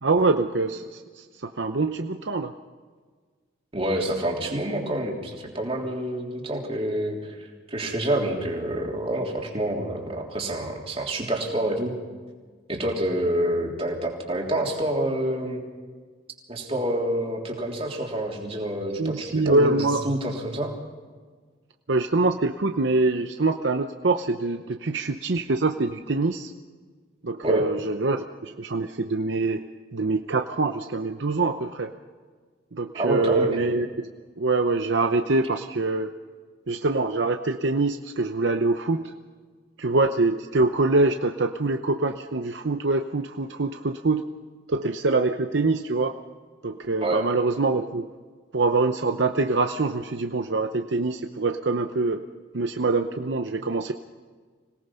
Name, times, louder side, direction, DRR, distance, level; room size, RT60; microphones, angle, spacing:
voice 1, 0.0-2.5 19.0-20.0 21.9-26.5 27.2-29.6 29.9-31.9 32.7-33.9 34.4-36.1 36.7-39.1 39.8-44.2 44.7-46.1 46.6-48.1 48.5-52.2 52.5-53.9, right 3 dB, 65° right, 6 dB, 0.8 m, -24 dB
voice 2, 3.7-7.4 7.7-11.9 12.7-15.6 16.5-20.7 27.4-27.6 32.9-33.5 47.0-47.2, right 1 dB, 30° right, 0 dB, 3.3 m, -27 dB
25.5 x 18.0 x 5.7 m, 1.5 s
head